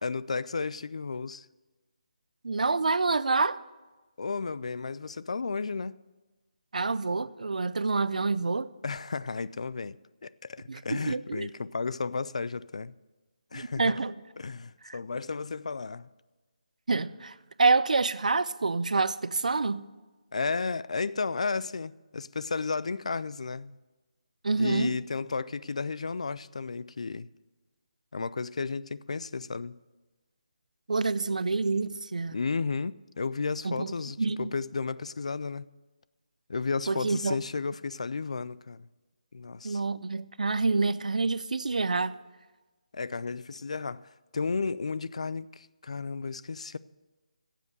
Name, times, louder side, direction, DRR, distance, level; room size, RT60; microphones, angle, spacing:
voice 1, 0.0-1.5 4.2-6.0 8.8-10.0 10.2-12.9 13.5-14.0 14.4-16.1 20.3-23.8 24.6-27.3 28.1-29.8 32.3-35.7 36.5-38.9 39.3-39.8 42.9-46.8, left 4 dB, 60° left, 0.3 m, -33 dB
voice 2, 2.4-3.6 6.7-8.7 10.7-11.5 13.5-14.1 14.8-15.0 16.9-19.8 24.4-25.0 30.9-32.4 33.6-34.5 36.9-37.4 39.6-42.1, right 3 dB, 75° right, 0.5 m, -27 dB
10.5 x 7.5 x 8.0 m
hypercardioid pair, 175°, 4 cm